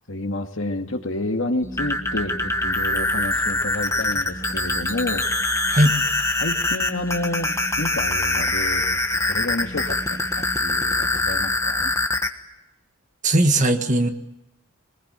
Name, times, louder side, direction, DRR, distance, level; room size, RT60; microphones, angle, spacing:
voice 1, 0.1-5.3 6.4-11.9, left 2 dB, 65° left, 4 dB, 2.2 m, -30 dB
sound 1, 1.6-12.3, left 2 dB, 15° left, 1.4 m, -24 dB
voice 2, 13.2-14.1, right 1 dB, 35° right, 6 dB, 1.7 m, -18 dB
23.0 x 20.5 x 9.0 m, 0.90 s
head